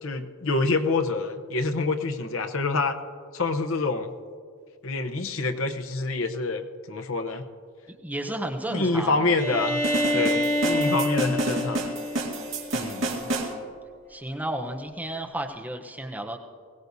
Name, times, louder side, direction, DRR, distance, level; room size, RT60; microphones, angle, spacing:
voice 1, 0.0-3.0 3.3-4.1 4.8-7.4 8.7-9.8 10.1-11.9 12.7-13.1, left 3 dB, 75° left, 7 dB, 0.9 m, -26 dB
voice 2, 7.9-9.4 10.0-10.3 12.8-13.4 14.1-16.4, right 1 dB, 10° right, 2 dB, 0.8 m, -33 dB
Bowed string instrument, 9.4-13.1, left 1 dB, 10° left, 1.5 m, -27 dB
sound 1, 9.8-13.5, right 2 dB, 65° right, 2.2 m, -30 dB
21.0 x 17.0 x 2.7 m, 2.1 s
head